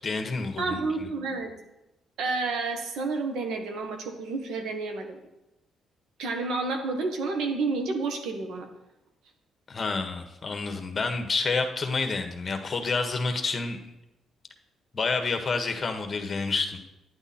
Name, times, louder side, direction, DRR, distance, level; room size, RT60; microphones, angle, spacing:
voice 1, 0.0-1.1 9.7-13.8 14.9-16.8, left 4 dB, 35° left, 6 dB, 1.4 m, -29 dB
voice 2, 0.6-1.5 2.2-5.2 6.2-8.7, right 3 dB, 80° right, 4 dB, 1.7 m, -30 dB
11.0 x 9.5 x 4.4 m, 0.94 s
cardioid pair, 90°, 0 cm